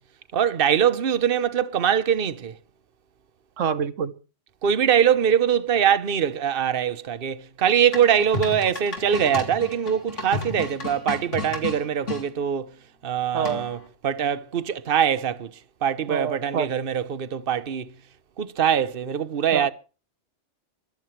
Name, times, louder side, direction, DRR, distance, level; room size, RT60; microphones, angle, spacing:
voice 1, 0.3-2.6 4.6-12.7 13.0-13.8 14.0-15.5 15.8-17.9 18.4-19.7, right 8 dB, 50° right, 1.2 m, -23 dB
voice 2, 3.6-4.1 13.3-13.6 16.1-16.7 19.5-19.7, right 7 dB, 85° right, 1.5 m, -26 dB
sound 1, 7.9-12.2 13.4-13.9, left 3 dB, 75° left, 3.8 m, -32 dB
24.0 x 13.5 x 3.3 m
omnidirectional pair, 1.3 m